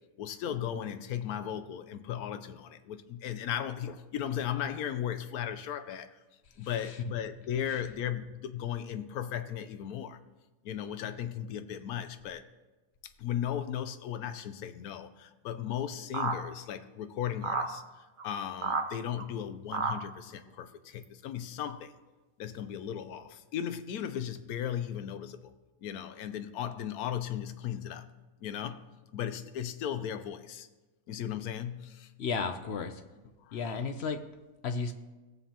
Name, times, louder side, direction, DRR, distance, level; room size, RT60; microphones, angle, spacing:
voice 1, 0.2-6.1 6.6-10.2 10.6-12.4 13.2-17.8 18.2-21.9 22.4-25.5 25.8-28.1 28.4-30.7 31.1-32.1 33.4-33.8, left 9 dB, 90° left, 11 dB, 1.1 m, -36 dB
sound 1, 16.1-16.4 17.4-17.7 18.2-18.3 18.6-18.8 19.2-19.3 19.7-19.9 21.0-21.1 21.6-21.7, right 4 dB, 45° right, 0.7 m, -30 dB
voice 2, 32.2-32.9 33.5-34.2 34.6-34.9, left 5 dB, 60° left, 8 dB, 0.8 m, -32 dB
18.0 x 7.2 x 2.9 m, 1.2 s
omnidirectional pair, 1.5 m